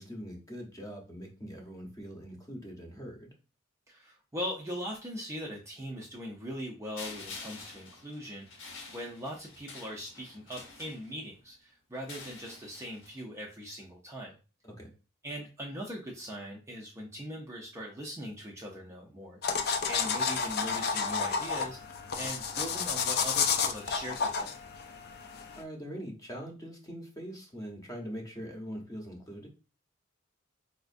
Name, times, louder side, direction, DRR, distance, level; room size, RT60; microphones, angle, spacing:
voice 1, 0.0-3.3 14.6-14.9 25.6-29.5, equal, 15° left, 1 dB, 0.7 m, -42 dB
voice 2, 3.9-14.4 15.2-19.4 19.9-21.8 22.2-24.6, equal, 15° right, -2 dB, 0.5 m, -40 dB
sound 1, 7.0-11.4 11.9-13.2, left 4 dB, 65° left, 0.8 m, -47 dB
sound 2, 19.4-25.6, left 6 dB, 50° left, 0.4 m, -31 dB
4.2 x 2.4 x 2.5 m, 0.34 s
head